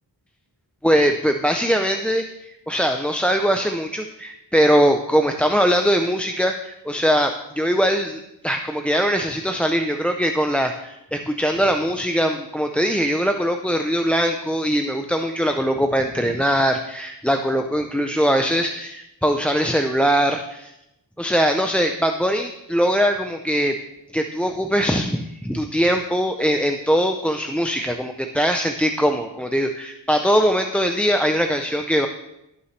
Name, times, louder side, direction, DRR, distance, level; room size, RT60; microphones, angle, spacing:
voice 1, 0.8-20.7 21.2-23.8 24.1-32.1, equal, 5° left, 5 dB, 0.5 m, -21 dB
17.0 x 5.8 x 3.2 m, 0.86 s
wide cardioid pair, 70°, 44 cm